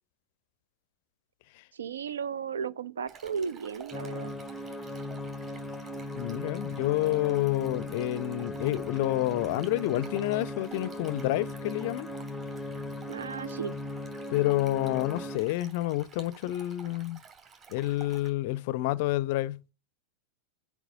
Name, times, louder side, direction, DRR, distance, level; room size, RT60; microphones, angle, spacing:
voice 1, 1.7-4.4 13.1-13.8, right 6 dB, 65° right, 0.5 m, -35 dB
Stream, 3.1-18.3, right 5 dB, 35° right, 3.4 m, -53 dB
sound 1, 3.9-15.4, left 1 dB, 5° left, 0.7 m, -38 dB
voice 2, 6.2-12.1 14.3-17.2 17.7-19.6, left 16 dB, 50° left, 0.5 m, -29 dB
8.8 x 4.7 x 6.7 m
figure-of-eight pair, 90°, 0 cm